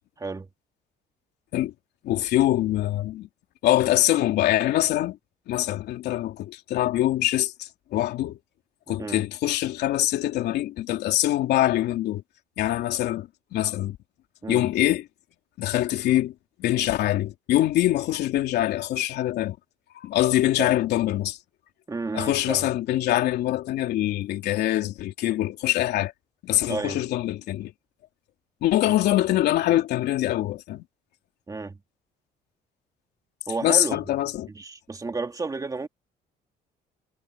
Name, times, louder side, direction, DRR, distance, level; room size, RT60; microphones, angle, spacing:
voice 1, 0.2-0.5 8.9-9.2 14.4-14.7 20.6-20.7 21.9-22.7 26.7-27.0 28.8-28.9 31.5-31.8 33.5-34.0 34.5-35.9, right 3 dB, 20° right, 2.2 m, -31 dB
voice 2, 2.0-3.3 3.6-5.2 5.5-8.4 8.9-12.2 12.6-14.0 14.5-15.0 15.6-19.6 19.9-21.4 22.1-26.1 26.4-27.7 28.6-30.8 33.6-34.5, left 14 dB, 75° left, 3.1 m, -24 dB
cardioid pair, 110°, 17 cm